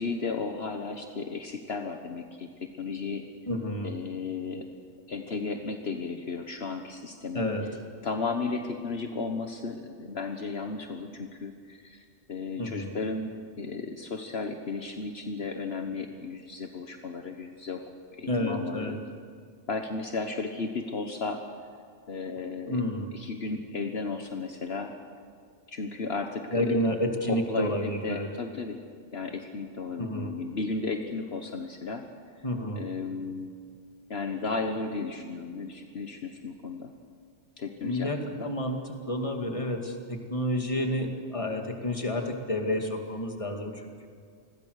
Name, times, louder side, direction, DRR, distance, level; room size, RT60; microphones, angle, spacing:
voice 1, 0.0-3.2 3.8-4.6 5.1-7.4 8.0-12.0 12.3-17.8 18.1-19.0 19.7-21.4 22.1-22.8 23.1-24.9 25.7-26.8 27.2-28.8 29.1-32.0 32.7-33.5 34.1-36.9 37.6-38.5, left 4 dB, 65° left, 5 dB, 1.5 m, -34 dB
voice 2, 3.5-3.9 7.3-7.6 12.6-12.9 18.3-18.9 22.7-23.1 26.5-28.3 30.0-30.3 32.4-32.8 37.8-38.8 39.1-44.1, left 1 dB, 30° left, 3 dB, 2.4 m, -30 dB
28.5 x 21.5 x 6.6 m, 2.1 s
omnidirectional pair, 1.2 m